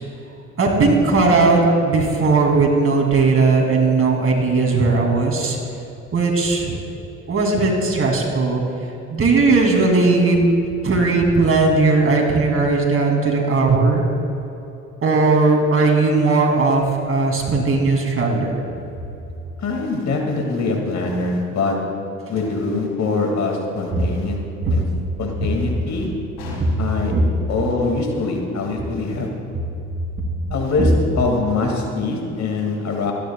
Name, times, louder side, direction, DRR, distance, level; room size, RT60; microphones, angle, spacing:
voice 1, 0.6-5.6 6.1-6.8 7.3-8.6 9.1-10.4 10.8-14.0 15.0-18.5 23.9-24.0 24.6-24.7 27.1-27.2 30.8-30.9, right 3 dB, 35° right, 1 dB, 2.9 m, -17 dB
voice 2, 19.6-21.8 22.3-24.4 24.7-24.8 25.2-26.1 26.8-27.1 27.5-29.3 30.5-33.1, left 3 dB, 45° left, 1 dB, 2.4 m, -23 dB
sound 1, 22.3-22.9 26.4-27.2, left 2 dB, 60° left, 3.5 m, -36 dB
29.5 x 10.0 x 2.4 m, 2.9 s
hypercardioid pair, 55°, 38 cm